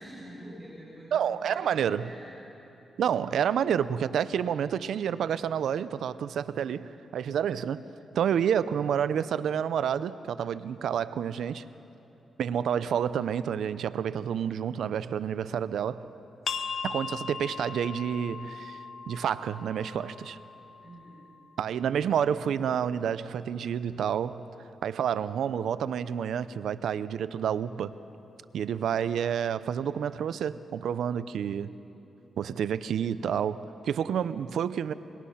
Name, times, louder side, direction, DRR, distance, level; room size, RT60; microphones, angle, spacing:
voice 1, 0.0-1.2 1.5-2.4 20.8-21.3, right 1 dB, 20° right, -7 dB, 7.2 m, -46 dB
voice 2, 1.1-2.1 3.0-7.8 8.1-11.6 12.4-16.0 16.8-20.4 21.6-24.4 24.8-27.9 28.5-31.7 32.4-34.9, right 8 dB, 80° right, 15 dB, 0.6 m, -29 dB
sound 1, 16.5-21.8, left 5 dB, 60° left, 1.1 m, -39 dB
25.0 x 23.0 x 5.7 m, 2.9 s
cardioid pair, 80°, 0 cm